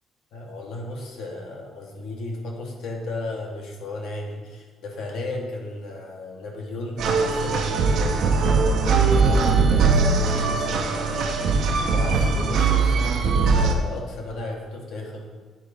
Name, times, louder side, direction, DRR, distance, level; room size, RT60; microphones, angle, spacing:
voice 1, 0.3-15.3, left 2 dB, 70° left, 0 dB, 1.2 m, -34 dB
sound 1, 7.0-13.7, right 4 dB, 60° right, 0.7 m, -20 dB
8.4 x 3.8 x 4.9 m, 1.4 s
cardioid pair, 175°, 0 cm